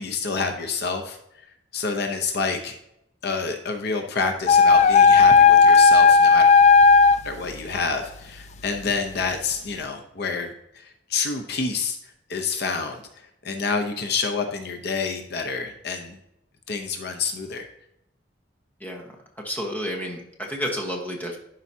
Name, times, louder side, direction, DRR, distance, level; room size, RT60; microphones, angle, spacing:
voice 1, 0.0-1.5 1.7-2.7 3.2-6.5 7.2-12.0 12.3-13.0 13.4-16.2 16.7-17.7, left 4 dB, 60° left, 4 dB, 0.8 m, -28 dB
sound 1, 4.5-7.2, left 5 dB, 40° left, 0.3 m, -13 dB
voice 2, 18.8-21.4, equal, 10° left, 1 dB, 1.2 m, -31 dB
11.5 x 4.9 x 2.8 m, 0.78 s
head